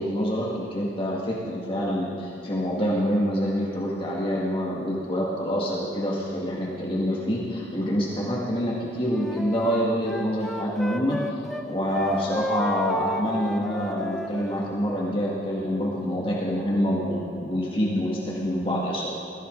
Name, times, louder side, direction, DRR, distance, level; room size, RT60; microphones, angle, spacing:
voice 1, 0.0-11.2 11.7-19.1, equal, 25° left, -4 dB, 1.8 m, -26 dB
Wind instrument woodwind instrument, 9.1-11.7 11.9-14.7, equal, ahead, 0.6 m, -33 dB
21.5 x 14.0 x 3.9 m, 2.7 s
head